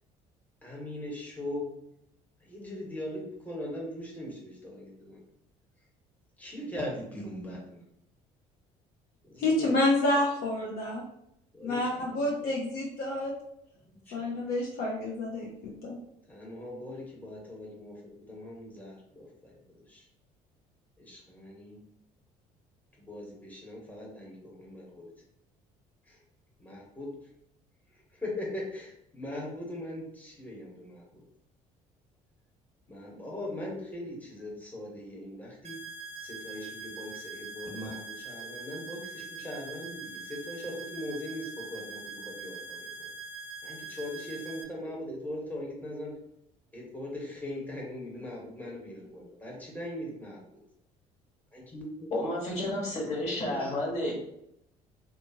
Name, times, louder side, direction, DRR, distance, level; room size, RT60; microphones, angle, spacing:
voice 1, 0.6-1.7 2.4-5.2 6.4-7.9 9.2-9.8 11.6-12.6 13.8-14.5 16.3-19.6 19.9-20.0 21.0-21.8 23.0-25.1 26.1-26.2 26.6-27.1 28.1-31.2 32.9-35.8 36.2-43.1 43.6-46.1 46.7-50.6 51.5-52.1 53.4-53.7, left 1 dB, 10° left, -3 dB, 1.1 m, -40 dB
voice 2, 9.4-11.0 11.6-13.3 14.1-16.0, left 1 dB, 65° left, -2 dB, 0.6 m, -28 dB
sound 1, 35.6-44.6, right 3 dB, 40° right, 0.4 m, -43 dB
voice 3, 52.1-54.1, left 1 dB, 45° left, -3 dB, 1.3 m, -31 dB
2.6 x 2.4 x 2.7 m, 0.78 s
supercardioid pair, 65°, 16 cm